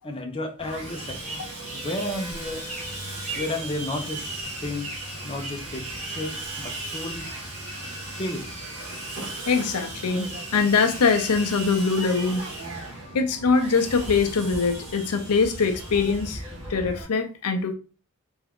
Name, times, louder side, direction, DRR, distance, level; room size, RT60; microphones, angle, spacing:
voice 1, 0.0-1.5 1.7-2.6 3.3-4.3 4.6-4.9 5.2-7.3 8.2-8.4, left 1 dB, 25° left, 2 dB, 0.7 m, -32 dB
Sawing, 0.6-17.0, right 1 dB, 75° right, 1.5 m, -36 dB
sound 1, 1.0-8.0, right 3 dB, 35° right, 1.3 m, -41 dB
voice 2, 9.5-10.3 10.5-12.4 13.1-16.4 16.7-17.7, left 4 dB, 90° left, 6 dB, 0.6 m, -23 dB
3.5 x 3.5 x 3.6 m, 0.34 s
head